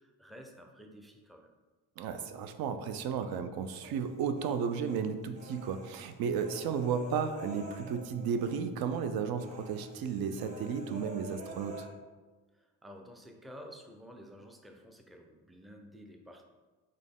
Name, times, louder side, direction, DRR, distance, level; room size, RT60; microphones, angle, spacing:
voice 1, 0.0-1.5 12.5-16.4, equal, ahead, 2 dB, 0.5 m, -51 dB
voice 2, 2.0-11.9, right 6 dB, 70° right, 9 dB, 0.5 m, -34 dB
Human voice, 3.8-5.0 5.4-8.6 8.8-9.1 9.4-11.8, equal, 20° right, 0.9 m, -48 dB
4.0 x 3.2 x 3.5 m, 1.3 s
supercardioid pair, 70°, 38 cm